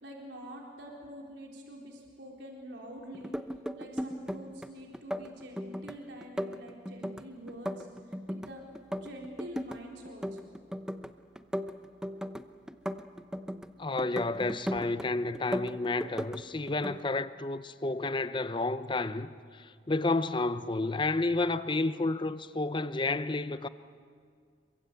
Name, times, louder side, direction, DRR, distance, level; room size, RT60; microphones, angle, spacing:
voice 1, 0.0-3.3 3.8-7.9 8.3-8.6 9.0-10.4, equal, 75° right, 4.1 m, -46 dB
sound 1, 3.1-4.7 4.9-5.9 6.2-8.5 8.7-9.8 10.0-11.1 11.3-13.7 14.0-15.1 15.3-16.4 16.7-17.0, equal, 5° right, 0.8 m, -36 dB
voice 2, 13.8-23.7, left 2 dB, 25° left, 0.7 m, -31 dB
27.5 x 23.5 x 8.3 m
head